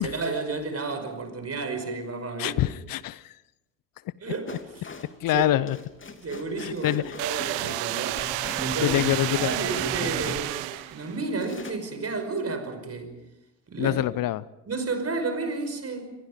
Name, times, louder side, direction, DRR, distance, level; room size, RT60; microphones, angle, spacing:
voice 1, 0.0-2.7 4.2-4.5 5.3-5.5 6.2-8.3 8.6-9.0 9.3-10.6 10.9-13.2 13.7-14.0 14.7-16.1, right 3 dB, 30° right, 5.5 m, -31 dB
voice 2, 2.4-3.4 5.2-5.8 6.6-7.1 8.8-9.5 13.8-14.4, left 14 dB, 45° left, 0.8 m, -25 dB
sound 1, 4.5-11.0 11.4-11.7, left 4 dB, 25° left, 2.9 m, -42 dB
sound 2, 7.2-11.2, right 20 dB, 60° right, 1.0 m, -30 dB
sound 3, 8.2-10.9, right 1 dB, 15° right, 4.0 m, -37 dB
29.5 x 25.0 x 5.2 m
figure-of-eight pair, 55°, 49 cm